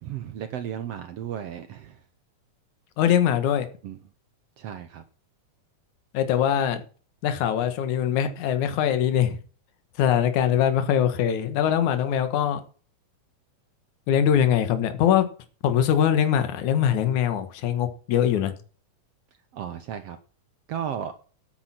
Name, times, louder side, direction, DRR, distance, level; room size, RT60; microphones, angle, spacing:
voice 1, 0.0-2.0 3.8-4.0 4.6-5.0 19.5-20.2 20.7-21.1, right 9 dB, 70° right, 9 dB, 1.6 m, -34 dB
voice 2, 3.0-3.7 6.1-6.8 7.2-9.4 10.0-12.6 14.1-15.3 15.6-18.5, left 9 dB, 70° left, 9 dB, 2.7 m, -22 dB
9.0 x 8.8 x 5.8 m, 0.38 s
omnidirectional pair, 3.8 m